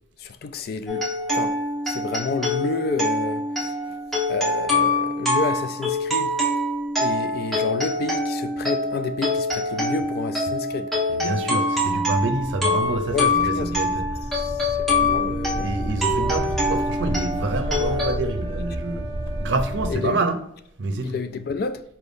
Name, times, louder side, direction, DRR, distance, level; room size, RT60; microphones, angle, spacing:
voice 1, 0.2-1.0 1.3-1.6 1.9-4.0 4.3-6.3 7.0-10.9 13.1-13.7 14.3-15.7 19.9-20.2 21.0-21.8, left 4 dB, 55° left, 0.3 m, -30 dB
sound 1, 0.9-18.1, left 1 dB, ahead, 0.8 m, -25 dB
voice 2, 11.1-14.0 15.5-19.1 19.4-20.4 20.8-21.2, right 2 dB, 75° right, 0.6 m, -27 dB
sound 2, 11.9-19.9, right 1 dB, 30° right, 0.4 m, -32 dB
sound 3, 16.1-20.1, equal, 20° left, 1.5 m, -38 dB
4.4 x 2.6 x 3.4 m
head